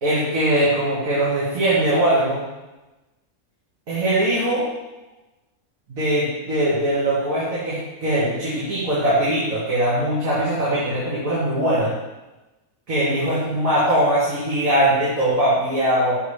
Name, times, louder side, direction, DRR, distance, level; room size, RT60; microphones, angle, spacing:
voice 1, 0.0-2.4 3.9-4.6 5.9-11.9 12.9-16.2, right 1 dB, 75° right, -10 dB, 2.3 m, -21 dB
6.8 x 6.3 x 3.3 m, 1.1 s
omnidirectional pair, 1.4 m